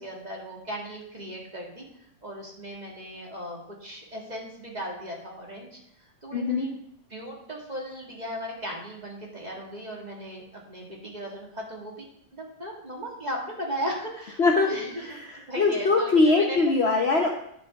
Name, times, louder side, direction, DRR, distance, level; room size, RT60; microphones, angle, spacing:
voice 1, 0.0-6.8 7.1-11.9 12.3-15.2 15.5-16.6, equal, 20° right, -2 dB, 2.0 m, -37 dB
voice 2, 6.3-6.7 14.4-17.3, left 3 dB, 70° left, 1 dB, 0.6 m, -22 dB
11.0 x 7.8 x 3.6 m, 0.72 s
omnidirectional pair, 2.3 m